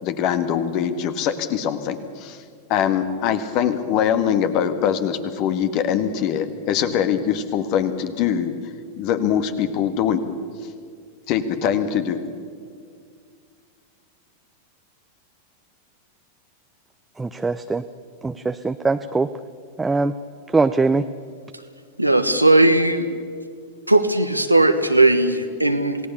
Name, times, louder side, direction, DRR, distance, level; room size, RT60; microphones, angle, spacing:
voice 1, 0.0-2.4 2.7-8.5 9.0-10.2 11.3-12.2, left 8 dB, 40° left, 10 dB, 1.7 m, -22 dB
voice 2, 17.2-17.8 18.2-19.3 19.8-20.1 20.5-21.0, right 3 dB, 10° right, 9 dB, 0.6 m, -21 dB
voice 3, 22.0-23.1 23.9-26.1, right 2 dB, 90° right, 8 dB, 1.4 m, -17 dB
28.0 x 18.0 x 6.9 m, 2.1 s
figure-of-eight pair, 90°, 0 cm